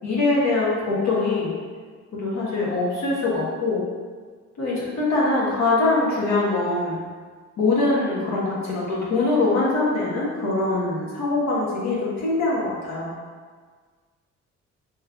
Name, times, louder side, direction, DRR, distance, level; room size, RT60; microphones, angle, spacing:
voice 1, 0.0-1.5 2.1-3.8 4.6-7.0 7.6-13.1, left 2 dB, 65° left, -5 dB, 1.1 m, -23 dB
3.7 x 3.0 x 2.3 m, 1.6 s
cardioid pair, 90°, 30 cm